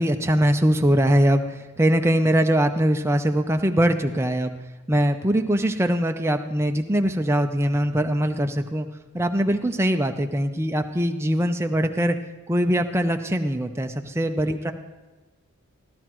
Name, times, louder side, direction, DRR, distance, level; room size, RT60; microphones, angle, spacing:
voice 1, 0.0-4.5 4.9-8.9 9.1-12.2 12.5-14.7, equal, 10° right, 6 dB, 0.5 m, -22 dB
15.0 x 12.0 x 3.0 m, 1.2 s
head